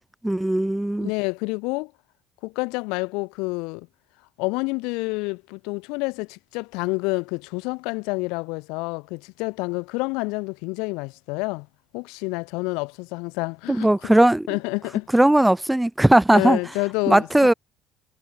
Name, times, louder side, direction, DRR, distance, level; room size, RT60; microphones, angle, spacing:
voice 1, 0.2-1.1 13.7-14.5 15.1-16.6 17.1-17.5, right 1 dB, 5° right, 1.0 m, -18 dB
voice 2, 1.0-1.9 2.4-3.9 4.4-11.7 11.9-14.1 14.5-15.1 16.3-17.5, left 29 dB, 85° left, 4.8 m, -28 dB
supercardioid pair, 90°, 0 cm